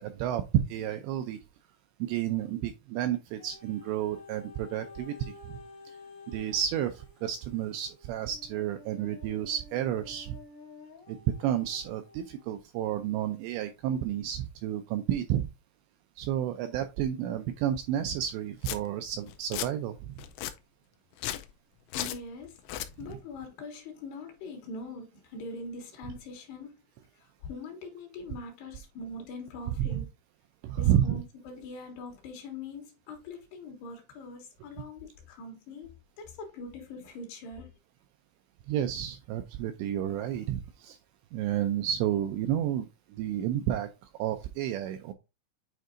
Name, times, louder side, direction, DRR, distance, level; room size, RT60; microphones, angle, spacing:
voice 1, 0.0-1.4 2.0-5.6 6.3-10.4 11.1-15.5 16.2-20.3 29.8-30.0 30.6-31.2 38.7-41.0 41.3-43.9 44.2-45.1, right 11 dB, 85° right, 2.6 m, -31 dB
sound 1, 3.4-12.5 13.1-13.2, left 3 dB, 50° left, 1.8 m, -51 dB
Domestic sounds home sounds, 18.2-18.3 18.6-18.8 19.3-19.7 20.2-20.5 21.1-21.5 21.9-22.2 22.6-22.9, left 13 dB, 85° left, 3.1 m, -35 dB
voice 2, 21.9-22.6 23.0-26.7 27.2-30.0 30.8-37.7, left 3 dB, 65° left, 3.2 m, -42 dB
9.3 x 4.5 x 2.5 m
omnidirectional pair, 5.5 m